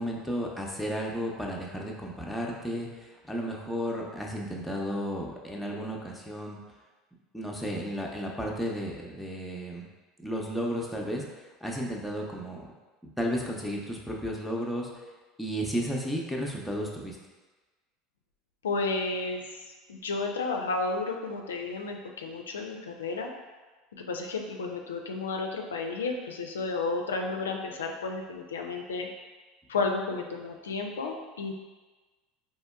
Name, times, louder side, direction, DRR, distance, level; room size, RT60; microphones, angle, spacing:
voice 1, 0.0-6.6 7.3-9.8 10.2-11.2 11.6-12.7 13.2-14.9 15.4-17.2, equal, 5° left, -2 dB, 0.7 m, -33 dB
voice 2, 18.6-19.6 19.9-23.3 24.0-29.1 29.7-31.5, left 3 dB, 80° left, 2 dB, 0.3 m, -32 dB
4.3 x 2.9 x 2.3 m, 1.3 s
hypercardioid pair, 75°, 0 cm